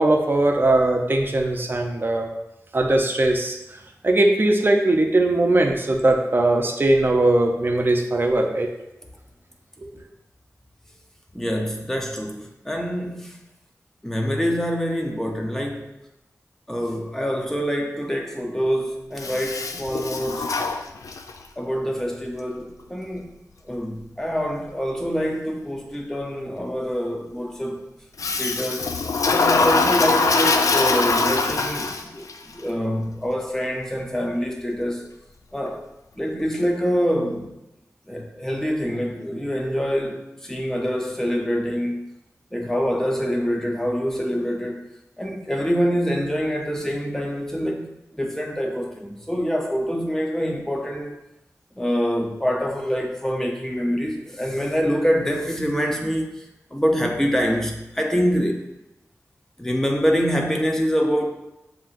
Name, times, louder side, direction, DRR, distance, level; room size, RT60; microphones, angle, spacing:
voice 1, 0.0-2.3 2.7-3.6 4.0-8.7, right 2 dB, 40° right, 2 dB, 0.6 m, -20 dB
voice 2, 11.3-13.4 14.0-15.9 16.7-20.5 21.6-23.4 23.7-27.9 28.4-29.0 29.3-35.0 35.5-35.8 36.2-37.6 38.1-42.0 42.5-44.8 45.2-51.1 51.8-56.4 56.7-58.7 59.6-61.3, equal, 10° left, 1 dB, 0.7 m, -25 dB
Toilet flush, 19.2-21.4 28.2-32.3, left 3 dB, 80° left, 0.3 m, -22 dB
7.1 x 2.9 x 2.5 m, 0.93 s
wide cardioid pair, 75°, 6 cm